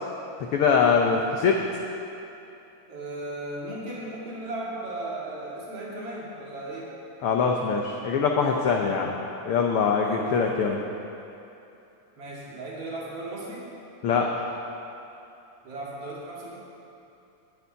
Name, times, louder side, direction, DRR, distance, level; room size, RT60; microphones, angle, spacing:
voice 1, 0.5-1.6 7.2-9.1 9.4-10.8 14.0-14.3, left 5 dB, 80° left, 1 dB, 1.3 m, -23 dB
voice 2, 2.9-6.9 10.0-10.2 10.5-10.6 12.2-13.7 15.6-16.6, right 2 dB, 55° right, -5 dB, 3.0 m, -36 dB
9.9 x 7.1 x 9.3 m, 2.8 s
omnidirectional pair, 3.4 m